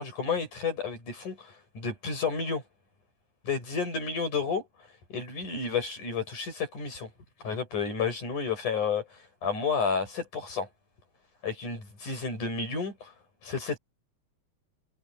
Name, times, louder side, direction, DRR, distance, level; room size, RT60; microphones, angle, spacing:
voice 1, 0.0-2.6 3.4-4.6 5.1-7.1 7.4-9.0 9.4-10.7 11.4-13.1 13.4-13.8, left 5 dB, 85° left, 9.2 m, -31 dB
omnidirectional pair, 3.5 m